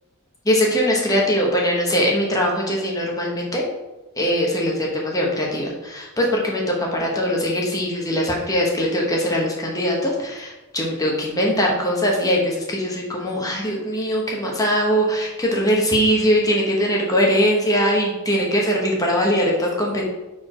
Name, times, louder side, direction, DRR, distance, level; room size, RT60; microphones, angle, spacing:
voice 1, 0.4-3.7 4.2-20.0, equal, 15° left, -2 dB, 1.0 m, -21 dB
4.6 x 4.4 x 4.9 m, 1.1 s
head